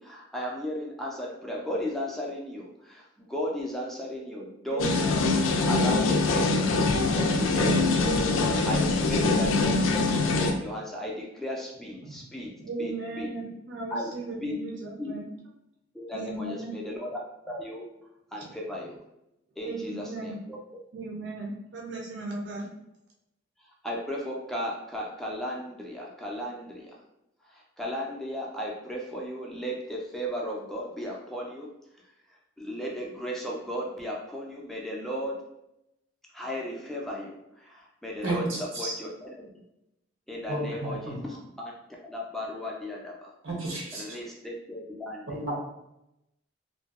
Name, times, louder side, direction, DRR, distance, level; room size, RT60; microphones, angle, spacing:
voice 1, 0.0-5.0 5.7-6.4 6.9-8.0 8.7-12.5 12.8-13.3 13.9-14.1 14.4-14.5 15.0-15.2 15.9-17.1 17.5-17.9 18.3-19.0 19.6-20.6 23.8-26.9 27.4-31.7 32.6-35.4 36.3-38.4 38.8-39.5 40.3-41.7 42.1-43.3 43.9-45.4, equal, ahead, -3 dB, 0.3 m, -35 dB
voice 2, 4.7-5.3 8.0-8.8 12.0-15.2 16.1-16.7 18.4-18.5 19.6-20.4 20.9-22.7, right 3 dB, 60° right, -2 dB, 0.5 m, -36 dB
sound 1, 4.8-10.5, left 3 dB, 85° left, 0.3 m, -24 dB
voice 3, 38.2-38.9 40.5-41.2 43.4-44.2 45.3-45.5, right 2 dB, 85° right, -3 dB, 0.9 m, -32 dB
2.6 x 2.2 x 2.3 m, 0.85 s
head